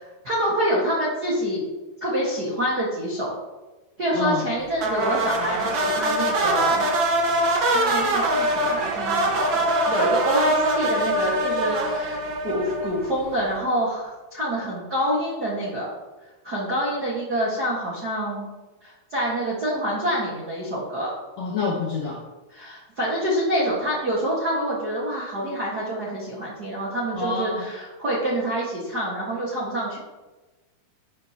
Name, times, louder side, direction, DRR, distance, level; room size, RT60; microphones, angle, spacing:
voice 1, 0.2-1.6 2.0-3.4 4.0-6.9 7.2-7.4 7.7-12.2 12.4-15.9 16.4-18.5 18.8-21.1 22.5-30.0, equal, 45° right, -6 dB, 1.2 m, -26 dB
sound 1, 4.8-13.2, right 1 dB, 85° right, 1.0 m, -23 dB
voice 2, 21.4-22.2 27.1-27.7, left 4 dB, 65° left, -2 dB, 1.7 m, -27 dB
11.0 x 10.0 x 3.0 m, 1.2 s
omnidirectional pair, 4.7 m